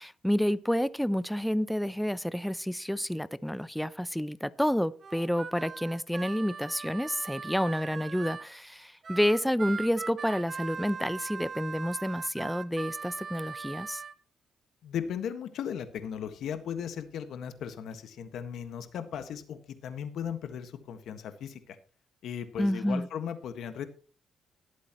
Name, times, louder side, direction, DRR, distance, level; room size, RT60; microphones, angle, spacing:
voice 1, 0.0-14.0 22.6-23.1, equal, ahead, 0.5 m, -29 dB
Harmonica, 5.0-8.5 9.0-14.1, right 5 dB, 45° right, 0.9 m, -40 dB
voice 2, 14.8-21.8 22.2-23.9, left 8 dB, 75° left, 1.5 m, -37 dB
20.0 x 8.3 x 3.0 m
cardioid pair, 90°, 0 cm